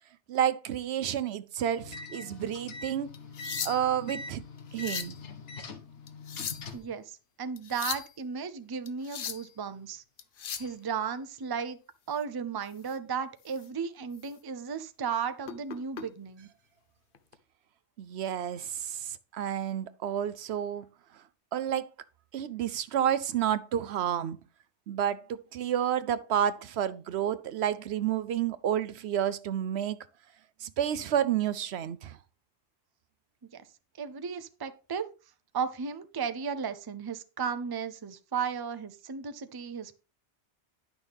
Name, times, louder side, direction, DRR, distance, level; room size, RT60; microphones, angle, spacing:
voice 1, 0.3-3.1 3.6-4.4 4.7-5.2 18.0-20.9 21.5-21.9 22.3-24.4 24.9-30.0 30.6-32.2, right 10 dB, 70° right, 0.8 m, -30 dB
sound 1, 1.8-6.9, left 3 dB, 80° left, 1.4 m, -43 dB
sound 2, 3.1-4.0 4.6-5.2 6.1-6.8 7.6-8.1 8.9-9.5 10.2-10.7 12.8-12.9 13.5-13.7 14.1-14.3 15.5-16.0 17.1-17.3, left 7 dB, 55° left, 0.9 m, -38 dB
voice 2, 6.7-10.0 10.6-11.8 12.1-16.5 33.5-33.7 34.0-35.1 35.5-40.0, right 6 dB, 25° right, 0.5 m, -35 dB
10.5 x 6.1 x 3.5 m
omnidirectional pair, 1.2 m